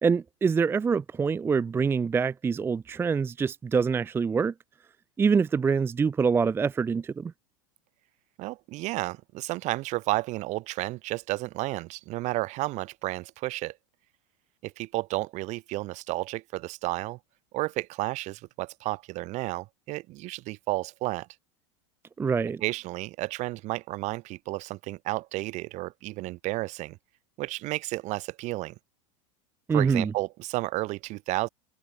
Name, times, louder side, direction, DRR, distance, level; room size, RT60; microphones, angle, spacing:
voice 1, 0.0-4.5 5.2-7.3 22.2-22.6 29.7-30.1, right 5 dB, 15° right, 0.5 m, -25 dB
voice 2, 8.4-13.8 14.6-17.2 17.5-21.3 22.6-27.0 27.4-28.8 29.7-31.5, right 20 dB, 45° right, 1.8 m, -32 dB
supercardioid pair, 125°, 16 cm